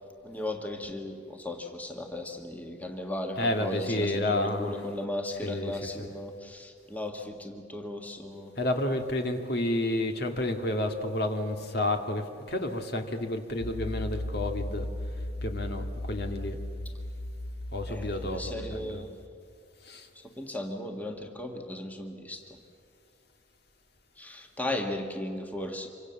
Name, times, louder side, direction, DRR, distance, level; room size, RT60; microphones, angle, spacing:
voice 1, 0.2-8.5 17.9-19.2 20.1-22.6 24.2-25.9, left 1 dB, 10° left, 3 dB, 1.6 m, -36 dB
voice 2, 3.4-4.7 5.4-5.7 6.0-6.1 8.6-14.9 15.4-16.6 17.7-19.0 19.8-20.1, left 1 dB, 50° left, 5 dB, 2.0 m, -30 dB
sound 1, 13.6-18.7, left 1 dB, 80° left, 3.4 m, -36 dB
27.0 x 25.0 x 7.1 m, 2.5 s
head